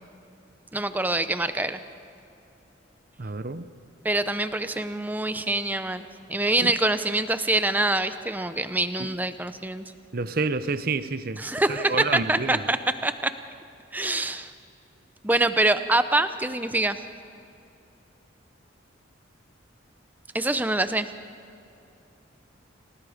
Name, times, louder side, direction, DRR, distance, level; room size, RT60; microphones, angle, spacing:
voice 1, 0.7-1.8 4.0-9.8 11.4-13.3 13.9-14.5 15.2-17.0 20.3-21.1, right 2 dB, 10° right, 11 dB, 0.6 m, -25 dB
voice 2, 3.2-3.6 6.6-6.7 9.0-9.1 10.1-11.4 11.7-12.6, right 3 dB, 50° right, 13 dB, 0.7 m, -29 dB
29.0 x 18.0 x 5.1 m, 2.8 s
head